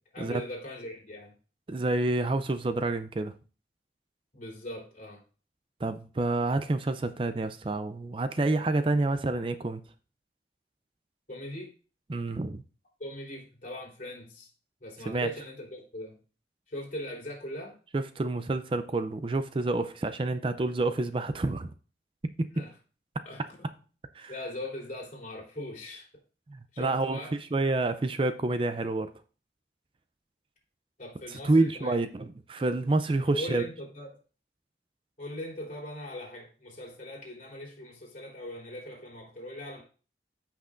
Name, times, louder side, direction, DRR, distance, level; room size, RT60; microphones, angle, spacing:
voice 1, 0.1-1.4 4.3-5.2 11.3-11.7 13.0-14.5 14.8-16.2 16.7-17.7 22.5-22.8 23.3-23.8 24.3-26.1 26.7-27.3 31.0-32.0 33.3-34.1 35.2-39.8, left 1 dB, 45° left, 3.7 m, -40 dB
voice 2, 1.7-3.3 5.8-9.8 12.1-12.6 15.1-15.3 17.9-21.7 22.4-22.5 24.2-24.3 26.5-27.2 27.5-29.1 31.3-33.6, right 2 dB, 30° right, 0.4 m, -28 dB
14.0 x 6.0 x 2.5 m
head